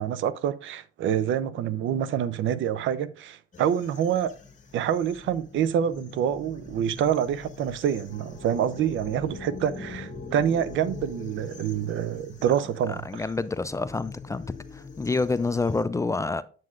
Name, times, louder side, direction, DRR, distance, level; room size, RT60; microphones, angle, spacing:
voice 1, 0.0-4.3 4.7-13.2, right 9 dB, 75° right, 0.5 m, -27 dB
sound 1, 3.5-15.8, left 4 dB, 40° left, 1.4 m, -43 dB
voice 2, 13.0-14.4 14.7-16.4, left 3 dB, 15° left, 0.3 m, -27 dB
7.5 x 7.5 x 2.4 m
cardioid pair, 90°, 20 cm